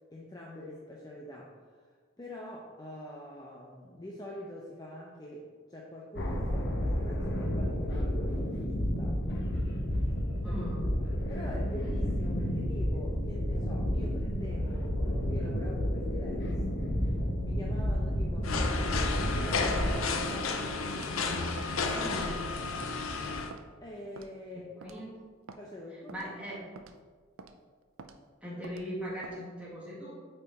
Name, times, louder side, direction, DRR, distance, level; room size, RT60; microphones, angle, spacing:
voice 1, 0.1-1.9 2.2-9.4 10.5-10.6 11.3-16.5 17.4-20.7 23.8-25.0 25.6-26.3, left 1 dB, 20° left, -3 dB, 0.7 m, -45 dB
sound 1, 6.2-20.0, equal, 55° left, 1.0 m, -31 dB
voice 2, 10.4-10.9 21.9-22.5 24.5-25.2 26.1-26.6 28.4-30.1, equal, 5° right, -6 dB, 2.0 m, -40 dB
sound 2, 18.4-23.5, left 4 dB, 80° left, 0.7 m, -32 dB
Walk footsteps, 20.4-20.6 21.0-21.2 21.6-21.7 22.1-22.4 22.8-23.0 23.5-23.6 24.2-24.4 24.8-25.0 25.5-25.6 26.1-26.3 26.8-27.0 27.4-27.5 28.0-28.2 28.6-28.9 29.2-29.4, right 4 dB, 75° right, 0.5 m, -47 dB
8.7 x 4.5 x 4.2 m, 1.5 s
head